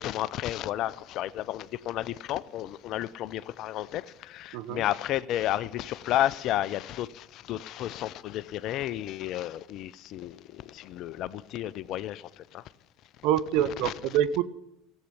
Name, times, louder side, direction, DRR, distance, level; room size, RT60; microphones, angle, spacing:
voice 1, 0.0-12.6 13.8-13.9, left 13 dB, 55° left, 0.6 m, -32 dB
voice 2, 4.5-4.8 13.2-14.4, right 10 dB, 60° right, 0.8 m, -26 dB
16.0 x 8.2 x 9.8 m
hypercardioid pair, 75°, 0 cm